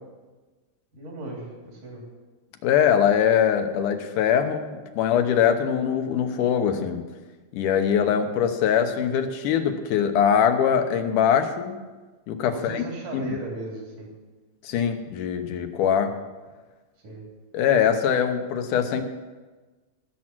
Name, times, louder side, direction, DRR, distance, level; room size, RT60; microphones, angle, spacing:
voice 1, 0.9-2.0 12.5-14.1 17.0-17.3, right 1 dB, 75° right, -1 dB, 4.8 m, -36 dB
voice 2, 2.6-7.0 7.5-11.8 12.3-12.8 13.1-13.4 14.6-16.2 17.5-19.0, left 8 dB, 80° left, 7 dB, 2.5 m, -22 dB
17.0 x 7.5 x 6.1 m, 1.3 s
omnidirectional pair, 3.7 m